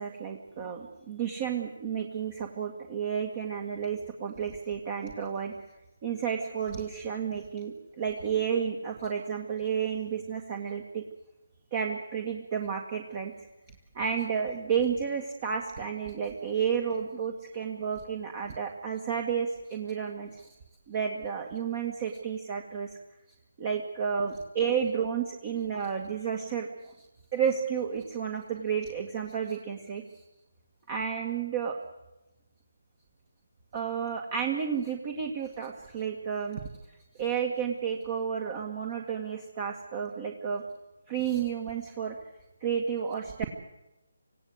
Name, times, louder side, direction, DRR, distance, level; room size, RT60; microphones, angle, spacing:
voice 1, 0.0-5.5 6.0-11.0 11.7-13.3 14.0-20.4 20.9-22.9 23.6-26.9 27.3-30.0 30.9-31.8 33.7-36.6 37.2-40.6 41.1-42.2 42.6-43.4, right 7 dB, 30° right, 4 dB, 2.0 m, -31 dB
26.5 x 16.5 x 8.1 m, 0.99 s
figure-of-eight pair, 150°, 0 cm